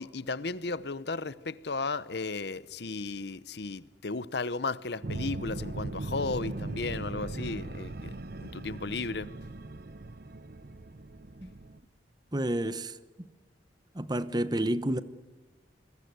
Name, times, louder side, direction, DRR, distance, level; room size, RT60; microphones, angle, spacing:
voice 1, 0.0-9.3, left 3 dB, 60° left, 0.8 m, -35 dB
sound 1, 5.0-11.8, right 2 dB, 55° right, 0.9 m, -39 dB
voice 2, 12.3-13.3 13.9-15.0, right 1 dB, 20° right, 1.0 m, -30 dB
27.0 x 22.0 x 8.1 m
head